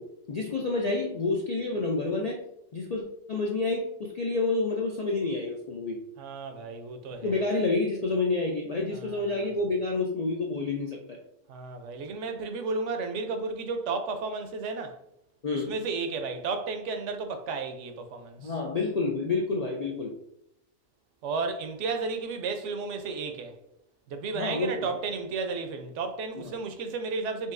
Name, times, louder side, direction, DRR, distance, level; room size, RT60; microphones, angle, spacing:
voice 1, 0.0-2.4 2.7-6.0 7.2-11.2 15.4-15.7 18.4-20.1 24.3-24.9 26.4-26.5, left 3 dB, 90° left, 0.3 m, -29 dB
voice 2, 6.2-7.4 8.9-9.5 11.5-15.0 15.5-18.5 21.2-23.5 24.1-27.5, right 4 dB, 70° right, 0.9 m, -33 dB
5.4 x 2.5 x 2.5 m
omnidirectional pair, 1.3 m